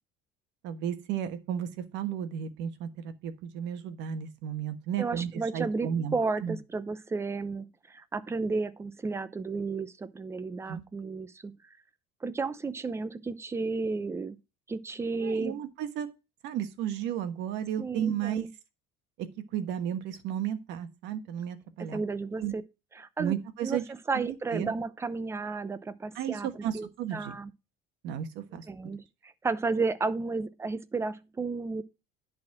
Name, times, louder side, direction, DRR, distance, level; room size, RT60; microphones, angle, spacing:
voice 1, 0.6-6.1 6.4-6.6 10.7-10.8 15.1-16.1 16.4-18.5 19.2-22.0 22.4-22.5 23.2-23.8 24.1-24.7 26.1-27.4 28.0-28.9, right 9 dB, 65° right, 1.5 m, -33 dB
voice 2, 5.0-11.6 12.2-14.4 14.7-15.6 17.8-18.5 21.8-22.6 23.0-23.3 23.6-26.5 26.7-27.5 28.7-31.8, right 4 dB, 15° right, 0.6 m, -33 dB
10.5 x 4.2 x 5.9 m
cardioid pair, 150°, 20 cm